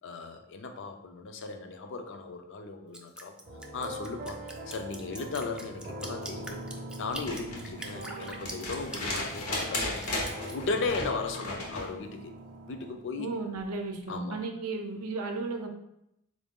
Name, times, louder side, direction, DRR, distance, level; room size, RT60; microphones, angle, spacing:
voice 1, 0.0-3.3 3.7-4.4 4.7-6.6 7.0-12.3 12.7-13.3 14.1-14.4, left 4 dB, 55° left, 6 dB, 0.4 m, -36 dB
Drip, 2.9-10.5, right 1 dB, 5° right, 0.3 m, -43 dB
sound 1, 3.4-12.9, right 1 dB, 40° right, 0.6 m, -43 dB
sound 2, 7.1-11.9 13.6-13.7, left 2 dB, 80° left, 0.9 m, -35 dB
voice 2, 13.2-15.7, right 3 dB, 80° right, 4 dB, 0.5 m, -34 dB
3.7 x 2.6 x 3.5 m, 0.81 s
head